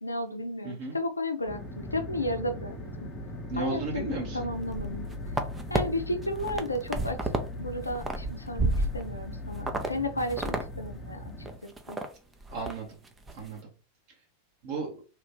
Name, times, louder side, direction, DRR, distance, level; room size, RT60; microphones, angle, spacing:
voice 1, 0.0-3.1 3.6-5.1 5.7-7.2 7.6-11.3 11.6-12.0, left 1 dB, 80° left, 7 dB, 0.5 m, -33 dB
voice 2, 0.6-1.0 3.5-4.5 12.5-12.9 13.3-13.7 14.6-15.0, right 3 dB, 50° right, -1 dB, 1.0 m, -34 dB
sound 1, 1.5-11.6, left 1 dB, 25° left, 0.8 m, -39 dB
sound 2, 4.6-5.8 6.2-7.5 7.8-9.3 9.7-9.9 10.2-10.7 10.9-11.0 11.5-12.1 12.4-12.7 13.1-13.4, right 2 dB, 15° right, 0.5 m, -30 dB
3.0 x 2.4 x 3.5 m, 0.34 s
figure-of-eight pair, 90°, 0 cm